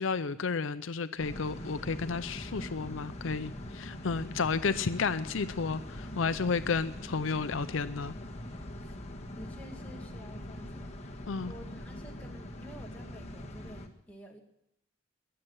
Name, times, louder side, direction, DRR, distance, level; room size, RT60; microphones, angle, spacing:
voice 1, 0.0-8.1 11.3-11.5, left 5 dB, 70° left, 12 dB, 0.6 m, -32 dB
sound 1, 1.2-13.9, left 1 dB, 35° left, 1.6 m, -42 dB
voice 2, 9.4-11.2 11.5-14.4, equal, 5° left, 0 dB, 2.3 m, -50 dB
21.5 x 7.8 x 7.9 m, 0.79 s
head